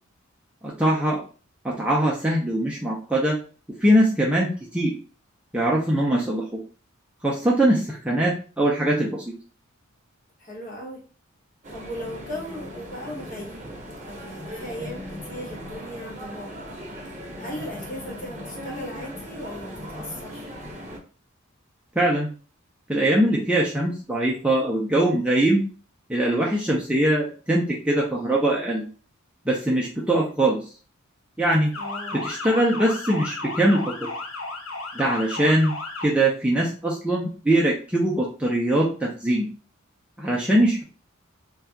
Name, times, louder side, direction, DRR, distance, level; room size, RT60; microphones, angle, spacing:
voice 1, 0.6-1.2 1.6-3.4 3.8-5.0 5.5-6.4 7.2-9.3 22.0-22.3 22.9-25.6 26.1-28.9 29.5-30.6 31.4-31.7 32.1-34.1 34.9-35.7 36.0-39.5 40.2-40.8, right 1 dB, 5° right, -4 dB, 0.4 m, -22 dB
voice 2, 10.4-11.0 11.7-13.6 14.0-16.5 17.4-20.5 31.8-32.2, equal, 40° left, -2 dB, 1.2 m, -37 dB
sound 1, 11.6-21.0, equal, 35° right, 0.8 m, -38 dB
Motor vehicle (road) / Siren, 31.7-36.1, left 3 dB, 80° left, 0.8 m, -34 dB
2.7 x 2.3 x 3.4 m, 0.38 s
head